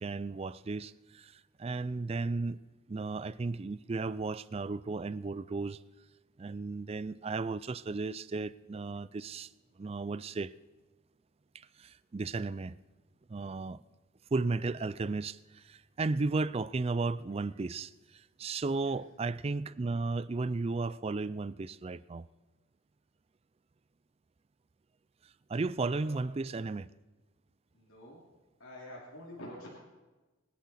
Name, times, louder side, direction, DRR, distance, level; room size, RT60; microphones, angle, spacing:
voice 1, 0.0-2.6 2.9-5.8 6.4-9.5 9.8-10.5 11.5-12.8 13.3-13.8 14.3-17.9 18.4-22.3 25.5-26.9, right 3 dB, 30° right, 0.3 m, -34 dB
voice 2, 26.0-26.3 27.7-28.2 28.6-29.8, left 1 dB, 80° left, 2.7 m, -48 dB
23.5 x 10.5 x 4.2 m
head